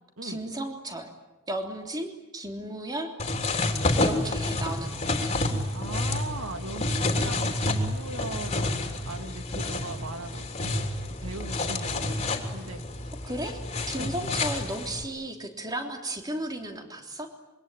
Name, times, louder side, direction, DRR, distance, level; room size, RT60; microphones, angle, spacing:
voice 1, 0.2-1.1 1.5-3.4 4.0-5.4 13.2-13.6 13.9-17.3, right 1 dB, 20° right, 3 dB, 3.3 m, -34 dB
sound 1, 3.2-15.0, left 2 dB, 30° left, 3.3 m, -29 dB
voice 2, 5.7-10.9 11.2-12.8 14.0-14.1, right 2 dB, 85° right, 6 dB, 2.5 m, -39 dB
26.5 x 24.0 x 9.2 m, 1.0 s
head